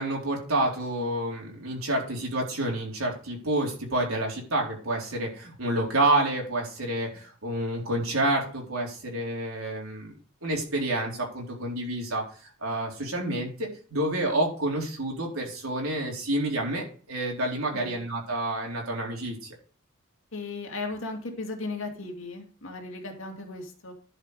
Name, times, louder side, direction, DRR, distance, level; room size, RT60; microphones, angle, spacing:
voice 1, 0.0-10.1 10.4-12.2 12.6-19.5, right 1 dB, 80° right, -1 dB, 4.1 m, -29 dB
voice 2, 20.3-23.9, left 3 dB, 65° left, 2 dB, 2.6 m, -36 dB
11.5 x 5.8 x 5.0 m, 0.42 s
head